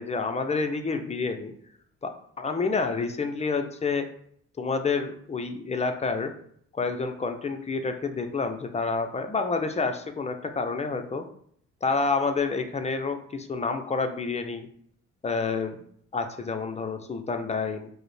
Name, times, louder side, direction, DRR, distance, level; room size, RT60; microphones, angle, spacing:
voice 1, 0.0-1.5 2.0-2.1 2.4-4.1 4.6-6.3 6.7-11.2 11.8-14.7 15.2-15.8 16.1-17.9, left 4 dB, 20° left, 6 dB, 0.5 m, -28 dB
4.7 x 2.1 x 3.2 m, 0.63 s
cardioid pair, 90°, 30 cm